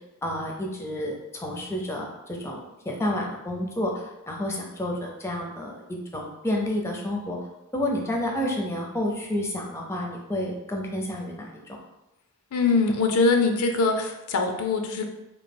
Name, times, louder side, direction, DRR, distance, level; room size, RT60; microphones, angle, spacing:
voice 1, 0.2-7.4 7.7-11.8, left 1 dB, 10° left, 0 dB, 0.6 m, -30 dB
voice 2, 12.5-15.1, left 3 dB, 85° left, 4 dB, 0.6 m, -23 dB
3.1 x 2.8 x 4.3 m, 0.94 s
head